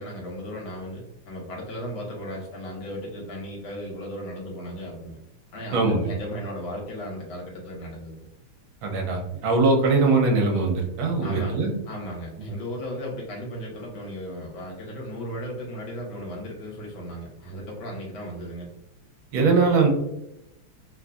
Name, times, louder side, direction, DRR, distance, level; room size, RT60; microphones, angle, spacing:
voice 1, 0.0-5.2 5.5-8.3 11.2-11.6 11.8-18.7, equal, 75° left, -2 dB, 1.7 m, -36 dB
voice 2, 5.7-6.1 8.8-11.7 12.4-12.5 19.3-19.9, right 3 dB, 75° right, 1 dB, 1.4 m, -21 dB
3.7 x 2.6 x 2.3 m, 0.86 s
omnidirectional pair, 2.3 m